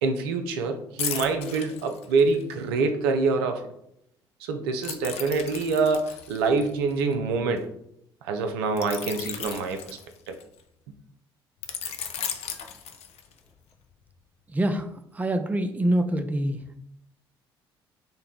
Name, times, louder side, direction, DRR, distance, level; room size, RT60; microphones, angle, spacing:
voice 1, 0.0-3.6 4.4-7.7 8.2-10.0 10.3-10.4, right 4 dB, 75° right, 5 dB, 0.4 m, -26 dB
sound 1, 1.0-2.5 4.8-7.6 8.8-10.6 11.6-13.5 13.9-14.1, left 8 dB, 55° left, 0.5 m, -36 dB
voice 2, 14.5-14.9 15.1-16.6, right 1 dB, 15° right, 7 dB, 0.4 m, -25 dB
3.9 x 2.1 x 3.6 m, 0.75 s
figure-of-eight pair, 50°, 13 cm